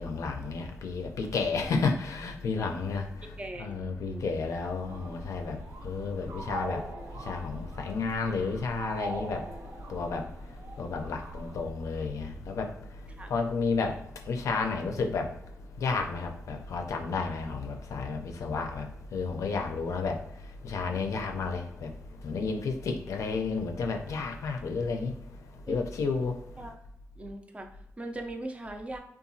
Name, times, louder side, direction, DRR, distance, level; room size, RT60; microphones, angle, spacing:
voice 1, 0.0-3.1 3.6-5.6 5.8-6.8 7.3-9.4 9.9-10.2 10.8-12.7 13.3-14.0 14.3-15.3 15.8-18.9 19.1-20.2 20.6-21.9 22.2-25.1 25.7-26.3, left 4 dB, 80° left, 0.4 m, -31 dB
voice 2, 3.4-4.3 13.2-13.3 25.7-25.8 26.6-26.8 27.2-29.0, right 1 dB, 25° right, 0.4 m, -40 dB
sound 1, 4.9-11.6, right 1 dB, 85° right, 0.5 m, -42 dB
2.8 x 2.3 x 2.6 m
cardioid pair, 95°, 5 cm